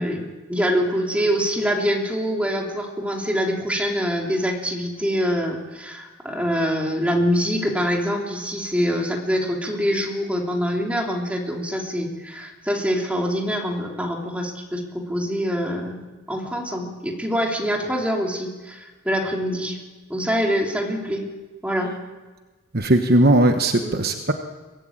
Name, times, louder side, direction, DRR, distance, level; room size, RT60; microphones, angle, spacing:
voice 1, 0.0-16.0 16.3-19.8 20.1-21.2 21.6-21.9 23.8-24.0, equal, 5° right, 0 dB, 3.2 m, -25 dB
voice 2, 22.7-24.3, right 1 dB, 45° right, 6 dB, 1.1 m, -18 dB
23.5 x 18.0 x 8.8 m, 1.3 s
head